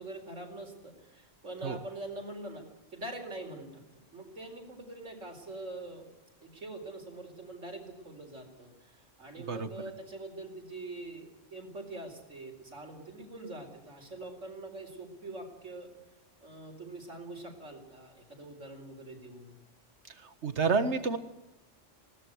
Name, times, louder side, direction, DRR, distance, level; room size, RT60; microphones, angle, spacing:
voice 1, 0.0-2.6 2.9-3.8 4.1-6.1 6.4-15.9 16.4-19.5, right 2 dB, 80° right, 3 dB, 4.7 m, -44 dB
voice 2, 20.4-21.2, right 4 dB, 65° right, 10 dB, 1.8 m, -28 dB
20.5 x 17.5 x 8.1 m, 0.97 s
omnidirectional pair, 1.3 m